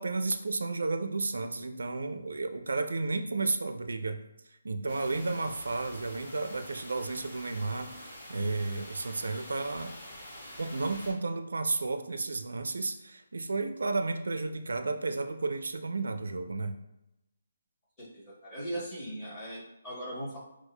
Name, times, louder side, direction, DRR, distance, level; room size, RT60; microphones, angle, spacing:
voice 1, 0.0-4.2 4.6-9.9 10.6-16.7, right 3 dB, 85° right, 8 dB, 0.4 m, -32 dB
sound 1, 4.9-11.1, left 1 dB, 35° left, 1.4 m, -47 dB
voice 2, 18.0-20.4, right 1 dB, 10° left, -8 dB, 0.9 m, -39 dB
6.1 x 2.1 x 2.2 m, 0.89 s
hypercardioid pair, 180°, 0 cm